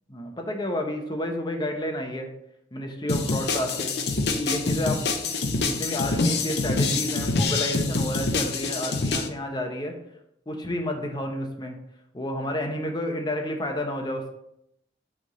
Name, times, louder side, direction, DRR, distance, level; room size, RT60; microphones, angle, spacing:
voice 1, 0.1-2.3 2.7-3.9 4.3-9.9 10.5-11.8 12.1-14.3, left 1 dB, 25° left, 3 dB, 0.9 m, -30 dB
sound 1, 3.1-9.3, left 3 dB, 65° left, 0.7 m, -26 dB
8.3 x 3.6 x 3.8 m, 0.78 s
head